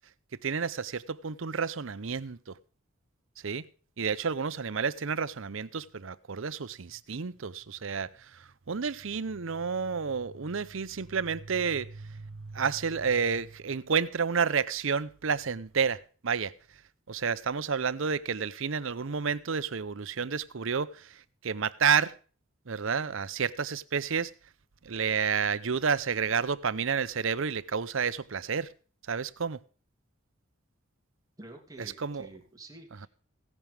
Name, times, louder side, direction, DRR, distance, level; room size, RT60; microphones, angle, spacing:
voice 1, 0.4-2.5 3.4-3.7 4.0-16.5 17.1-22.2 22.7-24.3 24.8-28.7 29.1-29.6 31.8-32.3, right 6 dB, 65° right, 0.7 m, -30 dB
voice 2, 31.4-33.1, right 2 dB, 15° right, 2.8 m, -48 dB
16.0 x 11.0 x 3.4 m
head